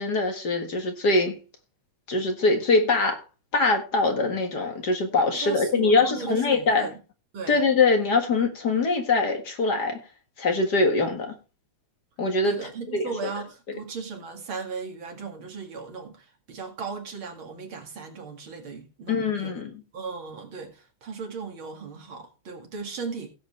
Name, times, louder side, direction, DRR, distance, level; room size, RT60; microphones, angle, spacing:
voice 1, 0.0-1.4 2.1-3.2 3.5-6.9 7.5-10.0 10.4-11.3 12.2-13.1 13.7-13.8 19.1-19.7, left 3 dB, 50° left, 2.2 m, -23 dB
voice 2, 5.3-6.9 7.3-7.6 12.4-19.6 19.9-23.3, right 5 dB, 70° right, 3.0 m, -37 dB
16.5 x 7.9 x 3.2 m
omnidirectional pair, 2.3 m